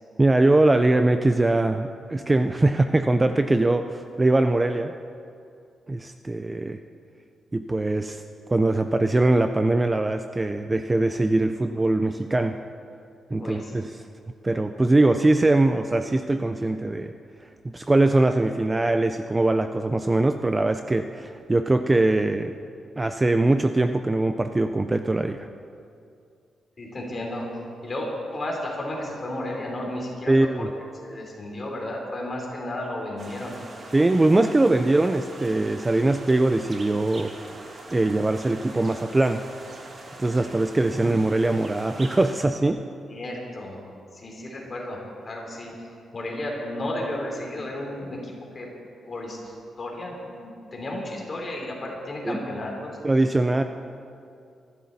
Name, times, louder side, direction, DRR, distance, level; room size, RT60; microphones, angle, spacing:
voice 1, 0.2-4.9 5.9-6.8 7.5-8.2 8.5-12.6 13.3-13.9 14.4-17.1 17.6-22.5 23.0-25.5 30.3-30.7 33.9-37.5 37.9-39.4 40.2-42.8 52.3-52.4 53.0-53.6, right 2 dB, 15° right, 8 dB, 0.4 m, -22 dB
voice 2, 13.4-13.7 26.8-30.7 31.0-33.6 43.1-43.8 44.1-48.7 49.0-53.0 53.4-53.6, left 1 dB, 30° left, -1 dB, 3.5 m, -33 dB
sound 1, 33.2-42.4, right 2 dB, 35° right, 1.8 m, -43 dB
24.5 x 12.5 x 4.1 m, 2.5 s
wide cardioid pair, 155°, 0 cm